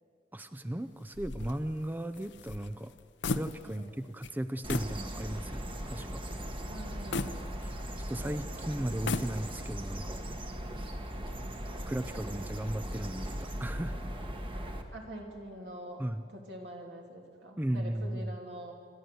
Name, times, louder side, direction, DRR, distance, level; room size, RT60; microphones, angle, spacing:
voice 1, 0.3-2.9 3.3-6.2 7.6-7.7 8.1-10.2 11.9-14.0 16.0-16.2 17.6-18.3, right 1 dB, 10° right, 11 dB, 0.4 m, -36 dB
sound 1, 1.1-3.9 4.2-4.4 4.7-5.0 5.5-5.6 7.1-8.1 8.9-9.7, left 3 dB, 75° left, 0.7 m, -36 dB
voice 2, 3.6-4.0 6.7-7.5 8.2-8.7 14.9-16.0 16.3-18.7, right 1 dB, 70° right, 1 dB, 3.1 m, -45 dB
sound 2, 4.6-14.8, equal, 30° right, 1.4 m, -39 dB
27.0 x 13.0 x 7.8 m, 2.2 s
head